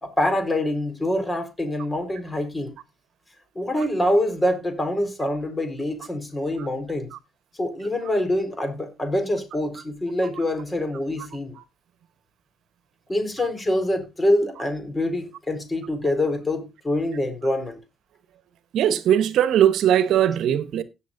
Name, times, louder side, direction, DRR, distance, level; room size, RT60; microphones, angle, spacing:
voice 1, 0.0-2.8 3.5-7.1 7.6-11.6 13.1-17.8, left 1 dB, 20° left, 4.1 m, -25 dB
voice 2, 18.7-20.8, right 10 dB, 80° right, 1.0 m, -19 dB
17.5 x 7.3 x 2.6 m
cardioid pair, 90°, 0 cm